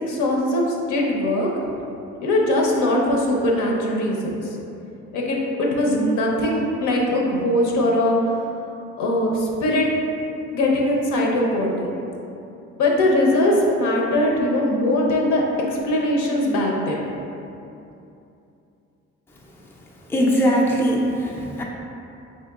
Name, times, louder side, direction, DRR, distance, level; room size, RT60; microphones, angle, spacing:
voice 1, 0.1-1.5 2.2-4.4 5.1-8.2 9.0-9.9 10.5-11.9 12.8-17.0, left 1 dB, 75° left, -2 dB, 0.7 m, -21 dB
voice 2, 20.1-21.6, equal, 10° left, -3 dB, 0.4 m, -20 dB
4.2 x 2.8 x 2.3 m, 2.7 s
cardioid pair, 90°, 30 cm